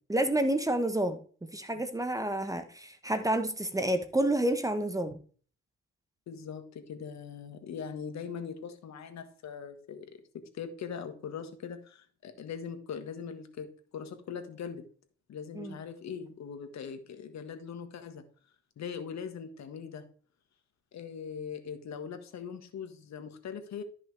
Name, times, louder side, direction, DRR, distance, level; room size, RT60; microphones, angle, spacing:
voice 1, 0.1-5.2 15.5-15.7, right 1 dB, 10° right, 1.0 m, -29 dB
voice 2, 6.3-13.7 13.9-14.8 15.3-18.2 18.8-20.0 20.9-23.8, left 7 dB, 65° left, 1.6 m, -41 dB
13.0 x 5.9 x 3.3 m
cardioid pair, 90°, 30 cm